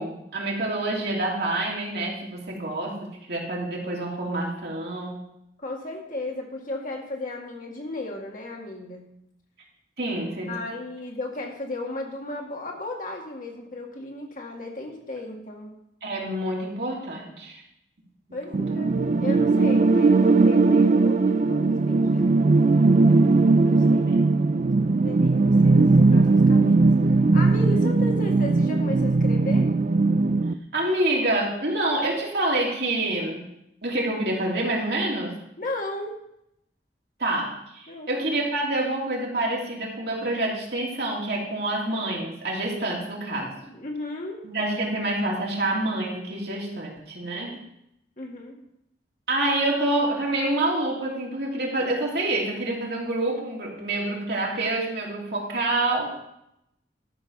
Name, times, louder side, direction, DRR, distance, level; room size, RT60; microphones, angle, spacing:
voice 1, 0.0-3.0 3.3-5.2 10.0-10.5 16.0-17.6 18.3-18.6 23.8-24.1 30.7-33.4 33.8-35.3 37.2-43.5 44.4-47.5 49.3-56.1, right 2 dB, 65° right, -2 dB, 2.9 m, -27 dB
voice 2, 5.6-9.1 10.5-15.7 18.3-22.2 23.6-24.3 24.7-29.7 35.6-36.2 37.9-38.1 43.6-44.4 47.5-47.6 48.2-48.6, left 2 dB, 50° left, 0 dB, 2.0 m, -35 dB
sound 1, 18.5-30.5, right 3 dB, 45° right, 0.4 m, -19 dB
13.0 x 6.6 x 5.4 m, 0.80 s
head